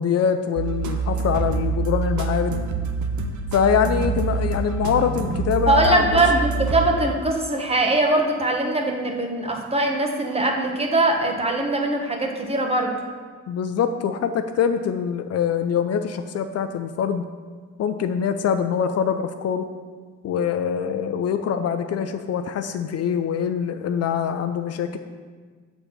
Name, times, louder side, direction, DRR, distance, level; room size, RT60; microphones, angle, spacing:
voice 1, 0.0-2.6 3.5-6.4 13.5-17.2 17.8-19.7 20.2-25.0, left 7 dB, 55° left, 8 dB, 0.5 m, -24 dB
sound 1, 0.6-7.4, right 4 dB, 75° right, 0.7 m, -26 dB
voice 2, 5.7-12.9, right 2 dB, 20° right, 2 dB, 1.1 m, -21 dB
6.9 x 4.1 x 5.8 m, 1.5 s
cardioid pair, 90°, 30 cm